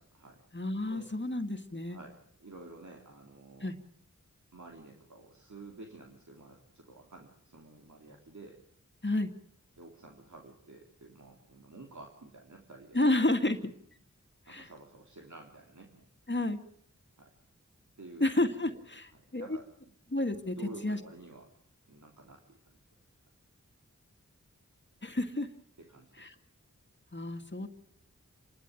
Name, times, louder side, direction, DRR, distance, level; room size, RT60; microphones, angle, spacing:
voice 1, 0.0-0.4 0.9-1.1 1.9-3.7 4.5-8.6 9.8-13.0 14.5-16.1 17.2-17.3 18.0-18.8 19.1-19.7 20.6-21.5 21.9-22.6 25.8-26.3, right 3 dB, 70° right, 1 dB, 3.4 m, -51 dB
voice 2, 0.5-2.0 3.6-3.8 9.0-9.3 12.9-13.7 14.5-14.7 16.3-16.6 18.2-19.5 20.1-20.6 20.8-21.0 25.0-25.5 26.2-26.3 27.1-27.7, left 1 dB, 35° left, 6 dB, 2.1 m, -30 dB
28.5 x 12.5 x 9.3 m, 0.66 s
wide cardioid pair, 50°, 30 cm